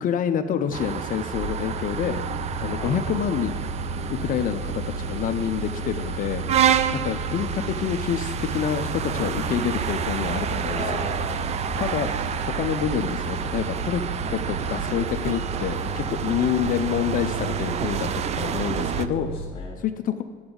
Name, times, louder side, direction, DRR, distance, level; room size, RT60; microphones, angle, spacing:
voice 1, 0.0-2.2 2.6-3.7 4.1-6.4 6.9-10.8 11.8-12.1 12.4-14.0 14.3-18.1 18.4-19.3 19.8-20.2, left 9 dB, 40° left, 8 dB, 0.5 m, -27 dB
sound 1, 0.7-19.1, right 8 dB, 35° right, 0.4 m, -29 dB
sound 2, 1.3-19.5, right 1 dB, 60° right, 2.9 m, -34 dB
voice 2, 10.7-11.5 11.7-12.0 15.7-16.0 19.1-19.8, left 3 dB, 25° left, -3 dB, 1.7 m, -37 dB
11.0 x 7.9 x 3.8 m, 1.5 s
cardioid pair, 115°, 20 cm